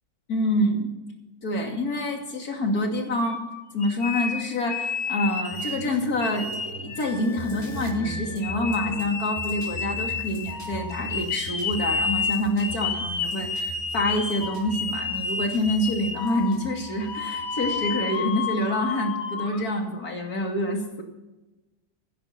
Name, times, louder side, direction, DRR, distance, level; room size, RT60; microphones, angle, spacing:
voice 1, 0.3-0.9 1.4-3.4 3.7-21.0, left 1 dB, 85° left, 2 dB, 3.1 m, -27 dB
sound 1, 3.2-5.9 6.2-19.6, left 5 dB, 50° left, 1.4 m, -31 dB
sound 2, 5.5-18.0, right 2 dB, 25° left, 3.8 m, -40 dB
16.0 x 11.0 x 5.8 m, 1.0 s
omnidirectional pair, 1.6 m